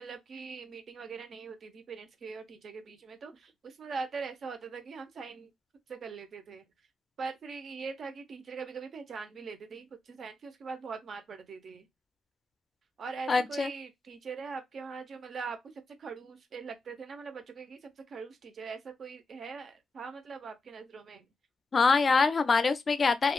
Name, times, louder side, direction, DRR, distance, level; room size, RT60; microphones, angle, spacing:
voice 1, 0.0-5.5 5.9-6.6 7.2-11.9 13.0-15.6 16.0-17.8 18.1-21.2, right 5 dB, 55° right, 0.7 m, -42 dB
voice 2, 13.3-13.7 21.7-23.3, left 4 dB, 35° left, 0.4 m, -24 dB
3.1 x 2.3 x 2.3 m
cardioid pair, 90°, 0 cm